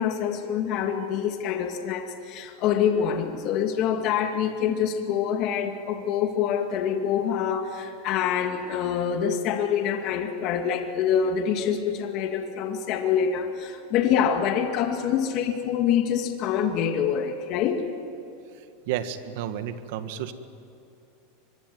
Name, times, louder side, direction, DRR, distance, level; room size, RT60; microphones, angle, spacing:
voice 1, 0.0-17.8, left 8 dB, 40° left, 5 dB, 2.2 m, -26 dB
voice 2, 18.9-20.3, right 10 dB, 60° right, 10 dB, 1.7 m, -31 dB
25.0 x 23.5 x 9.5 m, 2.7 s
supercardioid pair, 160°, 0 cm